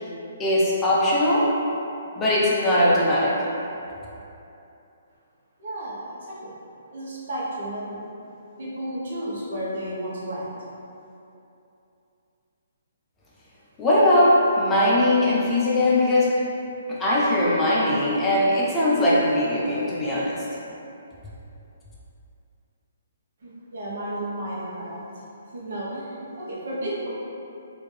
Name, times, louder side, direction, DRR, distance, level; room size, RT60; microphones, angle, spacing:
voice 1, 0.4-1.5 2.2-3.4 13.8-16.3 16.9-20.4, left 1 dB, 15° left, -7 dB, 0.6 m, -20 dB
voice 2, 5.6-6.1 6.4-6.5 6.9-8.0 8.6-10.5 23.4-25.0 25.5-27.1, right 1 dB, 65° right, -8 dB, 1.1 m, -32 dB
3.2 x 2.8 x 3.3 m, 2.8 s
hypercardioid pair, 140°, 0 cm